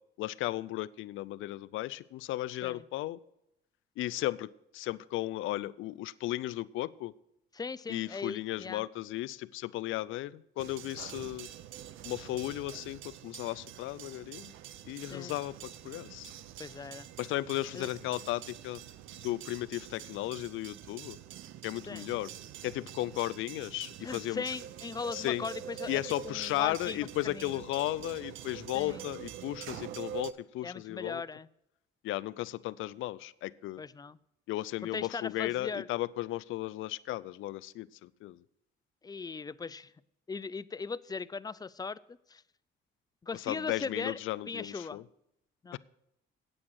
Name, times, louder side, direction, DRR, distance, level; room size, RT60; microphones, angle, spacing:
voice 1, 0.2-3.2 4.0-7.1 7.9-11.5 12.0-14.5 14.9-16.3 17.2-18.8 19.2-21.2 21.6-22.3 22.6-24.5 25.1-25.5 25.9-31.2 32.0-33.8 34.5-38.4 43.5-45.0 45.7-45.8, left 16 dB, 80° left, 19 dB, 0.4 m, -35 dB
voice 2, 7.5-8.9 15.1-15.4 16.6-17.1 17.7-17.9 21.9-22.1 24.0-27.6 28.7-29.1 30.6-31.5 33.8-34.2 34.9-35.9 39.0-39.9 40.3-42.4 43.2-45.0 45.6-45.8, left 4 dB, 20° left, 18 dB, 0.4 m, -39 dB
sound 1, 10.6-30.3, right 10 dB, 90° right, 0.6 m, -46 dB
8.7 x 8.6 x 6.3 m, 0.81 s
cardioid pair, 90°, 20 cm